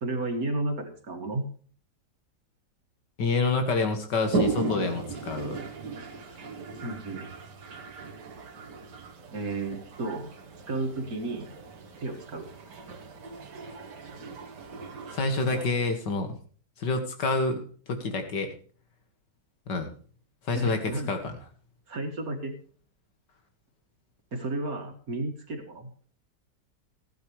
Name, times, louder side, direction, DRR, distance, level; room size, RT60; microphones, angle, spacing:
voice 1, 0.0-1.5 6.8-7.3 9.3-10.3 10.7-11.5 12.0-12.5 20.5-21.2 21.9-22.5 24.3-25.9, right 2 dB, 55° right, 5 dB, 2.5 m, -32 dB
voice 2, 3.2-5.6 15.1-16.4 16.8-18.5 19.7-19.9 20.4-21.3, left 3 dB, 80° left, 6 dB, 2.6 m, -28 dB
Toilet flush, 4.2-15.7, right 3 dB, 75° right, 2.1 m, -36 dB
15.5 x 11.0 x 3.2 m, 0.43 s
omnidirectional pair, 1.9 m